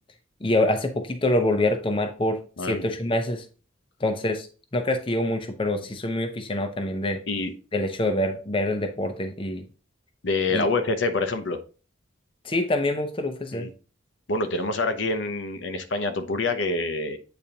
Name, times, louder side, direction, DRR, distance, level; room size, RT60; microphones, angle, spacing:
voice 1, 0.4-3.4 4.0-4.5 4.7-7.2 7.7-9.7 10.5-10.7 12.4-13.7, left 1 dB, 25° left, 7 dB, 0.6 m, -25 dB
voice 2, 2.6-2.9 7.3-7.5 10.2-11.6 13.5-13.7 14.3-17.2, left 3 dB, 65° left, 9 dB, 0.7 m, -26 dB
8.5 x 3.9 x 2.9 m, 0.35 s
head